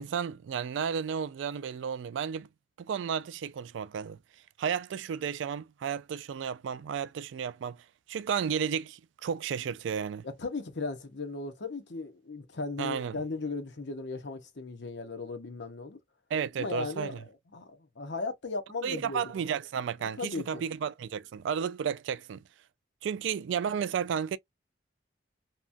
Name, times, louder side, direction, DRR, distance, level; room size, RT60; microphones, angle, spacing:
voice 1, 0.0-2.5 2.8-4.2 4.6-7.8 8.1-10.3 12.8-13.2 16.3-17.2 18.8-22.4 23.0-24.4, right 7 dB, 85° right, 0.3 m, -33 dB
voice 2, 10.2-16.0 16.6-17.2 17.5-17.7 18.0-19.2 20.2-20.6, left 3 dB, 70° left, 0.8 m, -36 dB
2.9 x 2.2 x 2.5 m
head